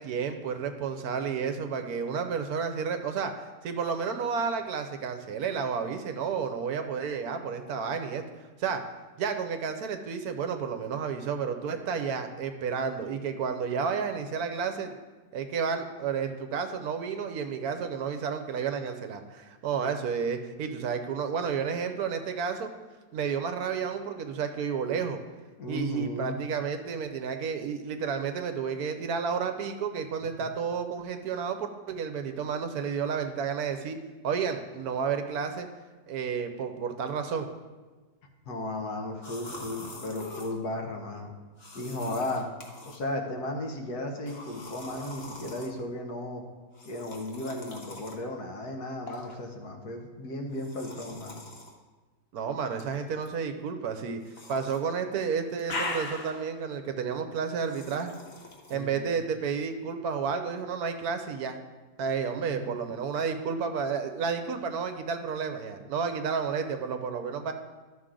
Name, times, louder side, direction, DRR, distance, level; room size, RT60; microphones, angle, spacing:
voice 1, 0.0-8.2 8.6-8.8 9.2-14.9 15.3-22.7 23.1-25.2 25.7-34.0 34.2-35.7 36.1-37.5 52.3-54.2 54.5-58.1 58.7-61.6 62.0-67.5, right 6 dB, 70° right, 7 dB, 1.1 m, -31 dB
voice 2, 25.6-26.4 30.4-30.5 38.4-41.3 41.7-42.5 42.8-46.4 46.8-51.4 58.7-59.1 62.5-62.9, left 1 dB, 70° left, 2 dB, 1.6 m, -35 dB
sound 1, 39.2-40.5 41.6-43.0 44.3-45.7 46.7-48.2 49.1-49.3 50.5-51.7 52.7-53.3 54.2-54.8 55.1-56.5 57.6-58.7, left 2 dB, 40° left, 1.2 m, -41 dB
12.5 x 6.1 x 3.7 m, 1.3 s
omnidirectional pair, 1.8 m